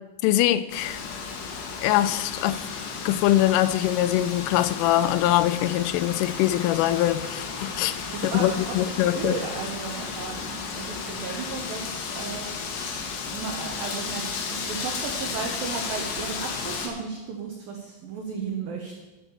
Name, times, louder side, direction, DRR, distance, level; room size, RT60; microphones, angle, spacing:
voice 1, 0.2-1.0 1.8-2.6 3.1-8.0 8.2-9.3, left 14 dB, 90° left, 12 dB, 3.1 m, -23 dB
Wind, 0.7-16.9, left 5 dB, 70° left, 3.2 m, -33 dB
voice 2, 8.1-12.5 13.3-14.3 14.5-19.0, right 5 dB, 90° right, 1 dB, 2.0 m, -34 dB
11.0 x 5.6 x 6.9 m, 1.1 s
omnidirectional pair, 5.6 m